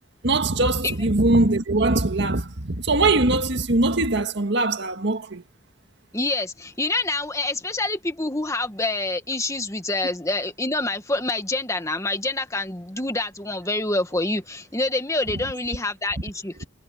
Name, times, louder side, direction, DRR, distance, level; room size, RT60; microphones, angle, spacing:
voice 1, 0.2-5.4, right 2 dB, 60° right, 1.8 m, -21 dB
voice 2, 6.1-16.6, left 2 dB, 15° left, 1.8 m, -26 dB
head